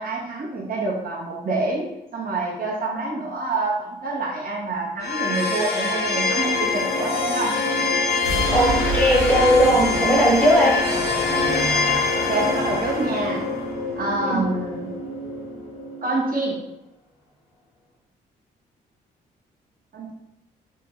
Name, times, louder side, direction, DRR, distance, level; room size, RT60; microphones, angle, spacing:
voice 1, 0.0-1.8 2.1-7.5 12.1-13.4 14.0-14.9 16.0-16.6 19.9-20.1, right 2 dB, 45° right, -3 dB, 0.9 m, -26 dB
sound 1, 5.0-16.1, left 3 dB, 50° left, 1.0 m, -25 dB
sound 2, 8.0-15.8, equal, 75° left, 0.7 m, -30 dB
voice 2, 8.5-10.8 14.2-14.4, equal, 5° left, -3 dB, 1.0 m, -18 dB
2.7 x 2.1 x 3.0 m, 0.86 s
hypercardioid pair, 40°, 21 cm